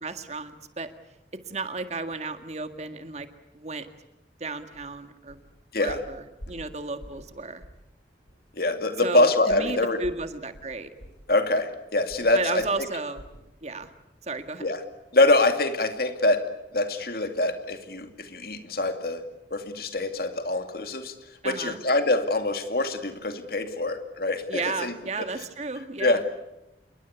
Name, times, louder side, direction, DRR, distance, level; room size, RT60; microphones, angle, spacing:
voice 1, 0.0-0.9 1.5-3.3 3.5-3.9 4.4-5.4 5.8-7.7 9.0-10.9 12.3-13.2 13.6-13.9 14.2-14.7 21.4-21.8 24.5-26.2, right 3 dB, 40° right, 8 dB, 1.9 m, -33 dB
sound 1, 4.7-4.9 5.3-5.5 5.9-7.3 7.6-7.9 8.3-8.4 9.5-13.5 13.8-14.0 14.4-14.5, equal, 80° left, 7.2 m, -47 dB
voice 2, 8.6-10.0 11.3-12.7 14.6-14.8 15.1-16.5 16.7-19.2 19.5-21.1 21.4-25.3 26.0-26.2, left 2 dB, 55° left, 7 dB, 2.5 m, -24 dB
27.5 x 22.5 x 8.3 m, 0.93 s
head